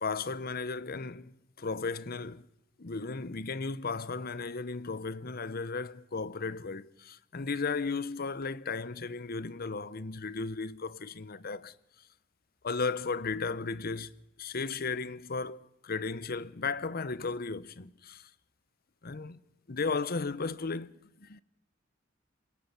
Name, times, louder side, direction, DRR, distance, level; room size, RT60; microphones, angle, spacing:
voice 1, 0.0-2.4 2.8-11.7 12.6-18.3 19.0-19.4 19.7-20.9 21.2-21.4, left 4 dB, 50° left, 0.8 m, -35 dB
27.0 x 17.0 x 5.9 m
head